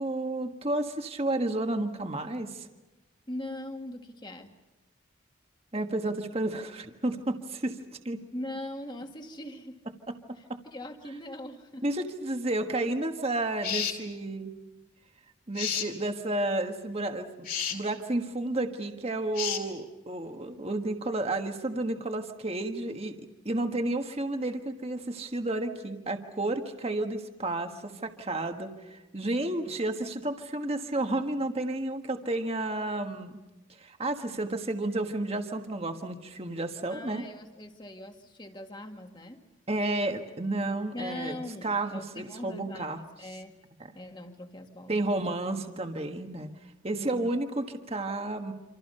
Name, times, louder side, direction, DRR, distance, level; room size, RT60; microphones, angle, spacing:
voice 1, 0.0-2.7 5.7-7.8 8.0-8.2 10.1-10.2 10.5-10.6 11.8-14.5 15.5-23.1 23.4-33.4 33.8-37.3 39.7-43.0 44.9-46.5 46.8-48.5, right 2 dB, 30° right, 5 dB, 1.5 m, -31 dB
voice 2, 3.3-4.5 8.3-9.8 10.7-11.9 36.9-39.4 40.9-43.6 44.0-45.0 46.9-47.3, left 1 dB, 25° left, 4 dB, 2.0 m, -41 dB
sound 1, 13.6-14.0 15.6-15.9 17.4-17.8 19.3-19.6, left 8 dB, 50° left, 3.3 m, -31 dB
27.5 x 26.5 x 5.6 m, 1.1 s
head